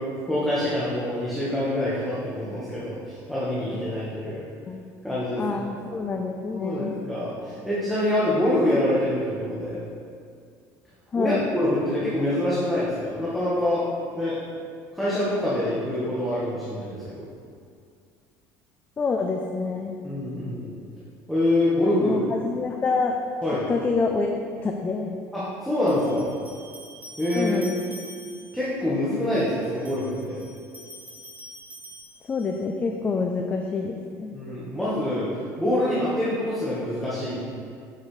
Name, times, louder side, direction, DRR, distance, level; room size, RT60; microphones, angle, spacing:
voice 1, 0.0-4.4 5.0-5.6 6.5-9.8 11.1-13.9 14.1-14.4 14.9-17.3 20.0-20.7 21.3-22.2 23.4-23.7 25.3-26.3 27.2-27.5 28.5-30.4 34.3-35.3 35.6-37.4, left 1 dB, ahead, -10 dB, 1.3 m, -25 dB
voice 2, 5.4-6.9 11.1-11.5 19.0-20.0 22.0-23.2 23.7-24.3 24.6-25.2 27.4-27.8 32.3-34.3, left 4 dB, 20° left, 3 dB, 0.4 m, -27 dB
sound 1, 25.9-28.7 29.6-32.7, right 1 dB, 25° right, 1.4 m, -45 dB
6.9 x 6.5 x 3.2 m, 2.2 s
cardioid pair, 140°, 7 cm